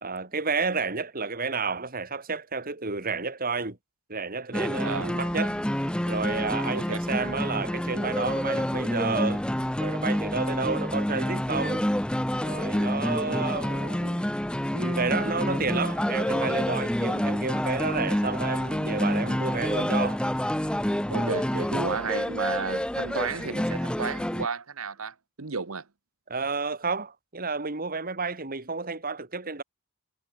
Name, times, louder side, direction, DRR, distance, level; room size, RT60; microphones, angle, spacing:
voice 1, 0.0-3.8 4.1-5.6 6.1-9.4 9.8-11.8 12.4-14.3 14.7-20.2 21.1-21.3 26.3-29.6, right 4 dB, 40° right, 2.5 m, -31 dB
sound 1, 4.5-24.5, equal, 5° left, 0.6 m, -28 dB
voice 2, 4.8-5.1 6.7-7.0 13.3-13.4 21.1-25.8, right 5 dB, 75° right, 1.3 m, -33 dB
head